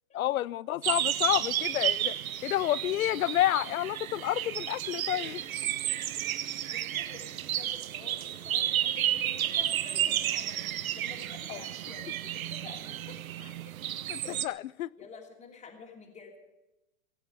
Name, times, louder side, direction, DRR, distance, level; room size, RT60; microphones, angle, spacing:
voice 1, 0.1-2.1 2.4-5.4 11.5-11.6 14.1-14.9, left 14 dB, 80° left, 0.6 m, -29 dB
sound 1, 0.8-14.5, right 12 dB, 80° right, 0.9 m, -32 dB
voice 2, 5.1-5.5 5.8-6.0 6.2-6.3 6.7-10.6 10.9-13.2 13.6-13.7 14.2-14.6 15.0-16.4, left 4 dB, 15° left, 2.8 m, -49 dB
17.5 x 8.6 x 8.3 m
hypercardioid pair, 130°, 41 cm